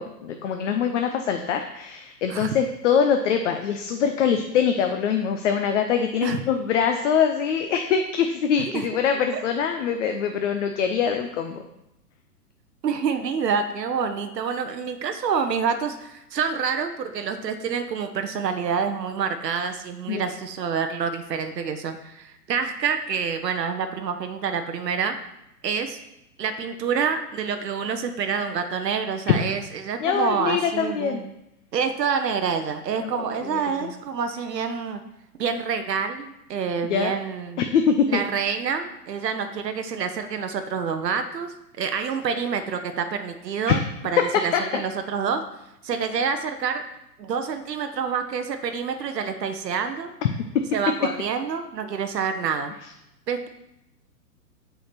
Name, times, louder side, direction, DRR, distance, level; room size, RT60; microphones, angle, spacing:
voice 1, 0.0-11.6 20.1-20.3 30.0-31.2 33.0-33.9 36.9-37.1 37.6-38.2 43.7-43.8 44.5-44.6 50.4-50.5, left 7 dB, 50° left, 5 dB, 0.6 m, -24 dB
voice 2, 12.8-25.1 25.6-26.0 26.4-31.3 31.7-35.0 35.4-37.6 38.1-43.8 44.0-45.4 45.8-46.8 47.2-50.1 50.7-52.7 53.3-53.5, right 6 dB, 80° right, 8 dB, 0.7 m, -27 dB
5.1 x 3.8 x 5.7 m, 0.87 s
hypercardioid pair, 120°, 49 cm